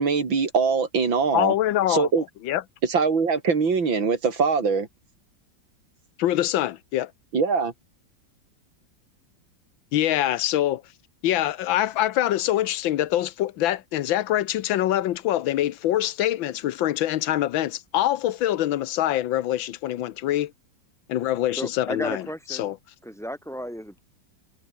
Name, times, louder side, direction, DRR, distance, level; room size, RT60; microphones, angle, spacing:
voice 1, 0.0-1.5 1.9-2.2 2.8-4.9 7.3-7.7, right 5 dB, 85° right, 3.9 m, -22 dB
voice 2, 1.3-2.1 2.4-2.6 6.2-7.1 9.9-10.8 11.2-20.5 21.1-22.8, left 13 dB, 90° left, 1.6 m, -24 dB
voice 3, 21.6-22.6 23.0-24.0, equal, ahead, 3.0 m, -33 dB
omnidirectional pair, 2.1 m